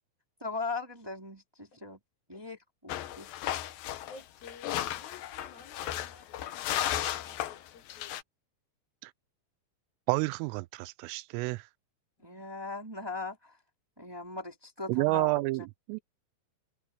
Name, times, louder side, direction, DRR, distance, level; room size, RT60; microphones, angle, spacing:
voice 1, 0.4-2.0 2.3-3.3 12.2-13.6 14.0-15.4, left 3 dB, 5° right, 3.3 m, -39 dB
sound 1, 2.9-8.2, left 12 dB, 90° left, 2.0 m, -35 dB
voice 2, 4.1-8.2 12.2-12.5, left 3 dB, 50° left, 7.0 m, -54 dB
voice 3, 10.1-11.7 14.9-16.0, right 22 dB, 85° right, 3.2 m, -30 dB
open air
omnidirectional pair, 5.8 m